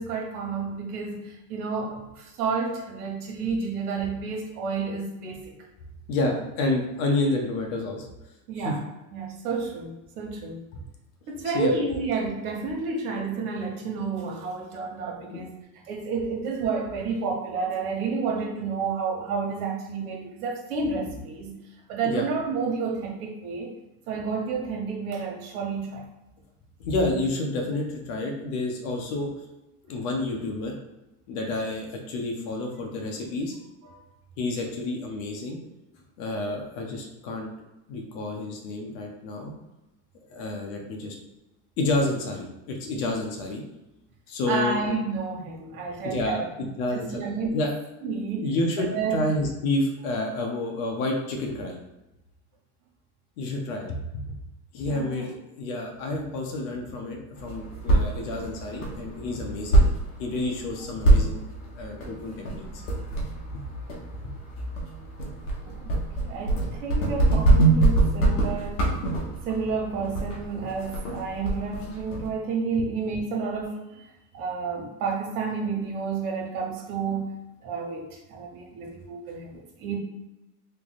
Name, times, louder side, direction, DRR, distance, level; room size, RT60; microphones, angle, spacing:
voice 1, 0.0-5.5 8.5-8.8 9.1-10.6 11.3-21.5 21.9-23.7 24.1-26.0 33.8-34.1 44.5-46.5 46.9-47.6 48.0-49.3 54.9-55.3 65.6-65.9 66.2-68.8 69.4-74.0 74.3-77.4 77.6-80.0, right 4 dB, 75° right, 0 dB, 1.1 m, -30 dB
voice 2, 6.1-8.0 8.6-8.7 11.5-11.7 15.3-15.4 22.0-22.3 26.8-29.3 29.9-30.8 31.3-33.5 34.4-35.6 36.2-37.5 37.9-39.5 40.3-41.1 41.8-43.6 44.3-44.8 46.0-47.1 47.5-47.7 48.4-51.8 53.4-54.0 54.3-54.4 54.7-59.8 60.2-61.4 61.8-62.7 63.5-63.6, left 2 dB, 65° left, 1 dB, 0.9 m, -29 dB
sound 1, 57.3-72.3, right 2 dB, 80° left, 1.1 m, -25 dB
3.3 x 2.2 x 4.0 m, 0.97 s
supercardioid pair, 115°, 45 cm